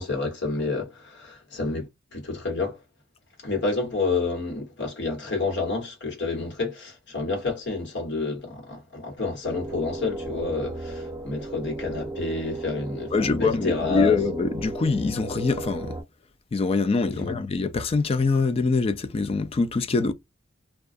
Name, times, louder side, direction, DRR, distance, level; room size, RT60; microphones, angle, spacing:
voice 1, 0.0-2.8 3.4-14.2 17.1-17.3, left 3 dB, 60° left, 1.3 m, -29 dB
sound 1, 9.4-16.0, right 2 dB, 15° right, 0.9 m, -35 dB
voice 2, 13.1-16.0 16.5-20.1, left 4 dB, 30° left, 0.3 m, -24 dB
2.3 x 2.3 x 2.5 m
head